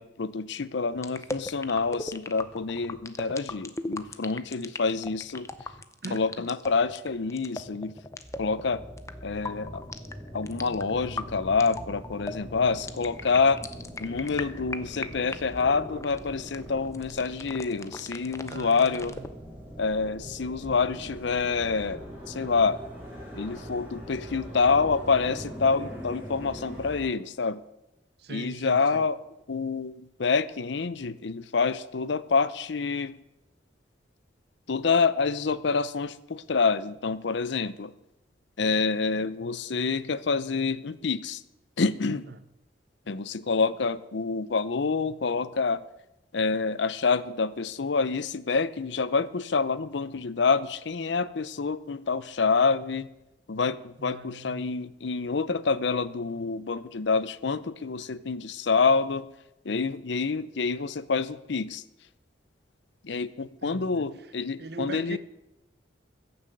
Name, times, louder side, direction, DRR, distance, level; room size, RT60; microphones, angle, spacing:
voice 1, 0.0-5.5 6.1-7.9 8.4-8.8 9.2-9.8 10.3-13.6 14.0-19.1 19.8-22.0 22.3-22.8 23.3-27.6 28.3-29.2 29.5-33.1 34.7-37.9 38.6-41.4 41.8-42.3 43.1-45.8 46.3-53.1 53.5-59.3 59.6-61.8 63.0-65.2, left 4 dB, 70° left, 0.6 m, -27 dB
sound 1, 0.9-19.3, left 2 dB, 15° left, 0.6 m, -39 dB
voice 2, 6.0-6.5 18.5-19.3 20.2-20.3 20.6-21.2 28.2-29.1 42.3-42.4 54.0-54.8 63.4-64.1 64.6-65.2, right 3 dB, 55° right, 0.8 m, -41 dB
sound 2, 8.1-27.1, equal, 10° right, 4.3 m, -42 dB
15.0 x 7.1 x 7.7 m
head